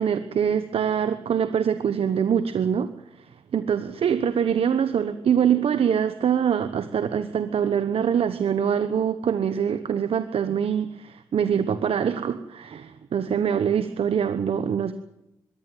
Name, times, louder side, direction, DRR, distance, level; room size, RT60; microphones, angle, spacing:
voice 1, 0.0-2.9 3.2-14.9, right 8 dB, 75° right, 11 dB, 1.1 m, -24 dB
21.5 x 15.5 x 9.2 m, 0.88 s
cardioid pair, 55°, 10 cm